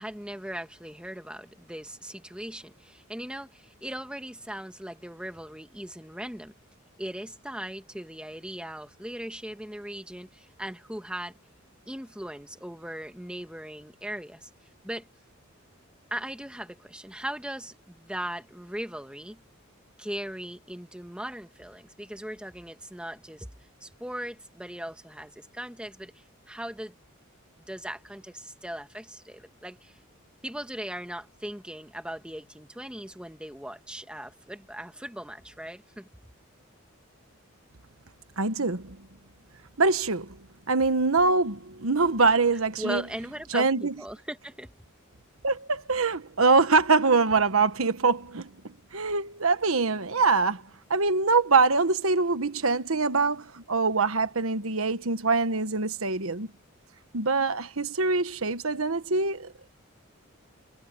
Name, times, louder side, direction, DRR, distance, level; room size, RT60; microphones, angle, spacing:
voice 1, 0.0-6.5 7.0-11.4 11.9-14.5 14.8-15.1 16.1-19.4 20.0-23.5 23.8-26.1 26.5-26.9 27.7-30.0 30.4-36.1 42.8-44.7, right 1 dB, 5° right, 1.5 m, -38 dB
voice 2, 38.4-39.0 39.8-40.4 40.7-43.1 43.5-43.9 45.4-50.6 50.9-56.5 57.1-59.5, right 4 dB, 80° right, 1.4 m, -24 dB
head